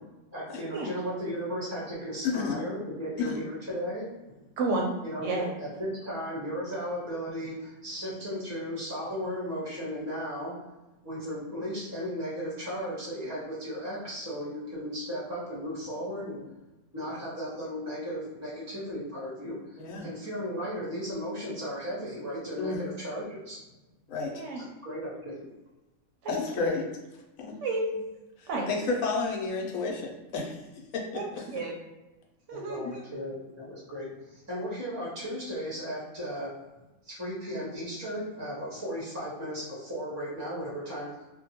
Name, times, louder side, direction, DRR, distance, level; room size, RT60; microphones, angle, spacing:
voice 1, 0.3-4.1 5.0-5.4 5.8-10.5 11.0-16.4 16.9-23.6 24.6-25.5 32.5-36.5 37.0-41.1, equal, 20° right, -7 dB, 0.5 m, -35 dB
voice 2, 2.2-2.6 3.2-3.4 19.8-20.1 22.6-22.8 24.1-24.4 26.3-26.9 27.4-27.6 28.4-30.6 30.9-31.4 32.8-32.9, left 4 dB, 75° left, 0 dB, 0.9 m, -31 dB
voice 3, 4.6-4.9 5.2-5.5 24.3-24.6 26.2-26.7 27.6-27.9 28.5-28.7 31.1-31.8 32.5-33.0, right 3 dB, 70° right, 0 dB, 0.8 m, -31 dB
2.6 x 2.2 x 2.8 m, 1.1 s
omnidirectional pair, 1.5 m